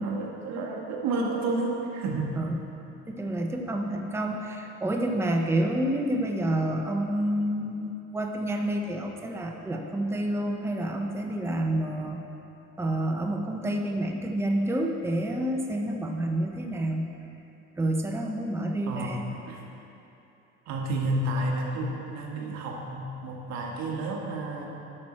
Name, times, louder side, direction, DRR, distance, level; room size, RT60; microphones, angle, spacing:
voice 1, 0.0-2.4 18.9-19.6 20.6-24.7, right 2 dB, 65° right, -1 dB, 1.6 m, -31 dB
voice 2, 3.1-12.2 12.8-17.1 17.8-19.2, right 1 dB, 10° right, 2 dB, 0.8 m, -28 dB
12.0 x 6.1 x 4.3 m, 2.9 s
cardioid pair, 105°, 29 cm